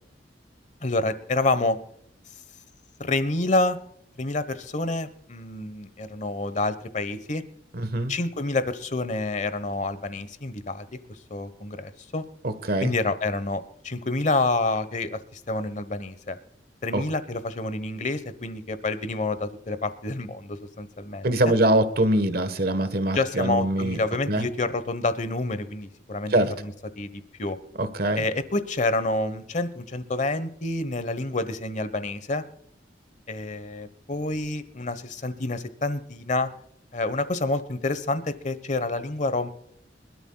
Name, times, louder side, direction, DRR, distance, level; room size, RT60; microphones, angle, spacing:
voice 1, 0.8-1.8 3.0-3.8 4.2-7.4 8.1-11.0 11.3-12.2 12.8-16.4 16.8-21.5 23.1-27.6 28.2-32.4 33.3-36.5 36.9-39.5, left 2 dB, 45° left, 14 dB, 1.2 m, -28 dB
voice 2, 7.7-8.1 12.4-12.9 16.9-17.0 21.2-24.0 24.3-24.5 26.3-26.5 27.8-28.2, right 1 dB, 55° right, 11 dB, 1.4 m, -23 dB
25.0 x 12.5 x 2.4 m, 0.70 s
head